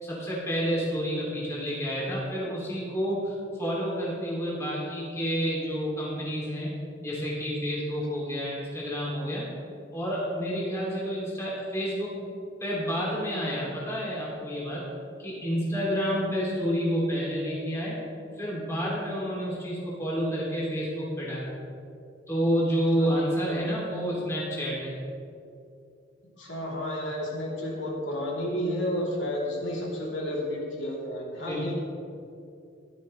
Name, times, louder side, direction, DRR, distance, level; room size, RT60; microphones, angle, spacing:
voice 1, 0.0-6.7 7.0-9.5 9.9-12.1 12.6-14.9 15.2-18.0 18.4-21.5 22.3-24.9 31.4-31.7, equal, 15° left, -6 dB, 2.6 m, -29 dB
voice 2, 26.4-31.7, left 1 dB, 85° left, -4 dB, 3.1 m, -31 dB
15.5 x 11.0 x 3.2 m, 2.5 s
head